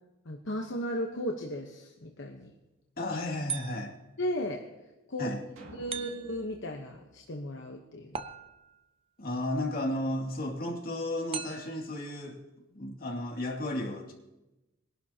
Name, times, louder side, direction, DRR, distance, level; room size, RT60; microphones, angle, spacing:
voice 1, 0.2-2.5 4.2-4.6 5.1-5.3 5.7-8.2, equal, 65° left, 2 dB, 1.1 m, -35 dB
voice 2, 3.0-3.9 5.2-5.4 9.2-12.4 12.7-14.1, left 1 dB, 50° left, -1 dB, 2.4 m, -33 dB
sound 1, 3.5-4.1 5.9-6.5 8.1-8.9 11.3-11.9, right 7 dB, 30° right, 0.6 m, -39 dB
sound 2, 5.6-8.0, right 1 dB, 85° right, 2.3 m, -53 dB
21.5 x 11.5 x 2.9 m, 1.0 s
head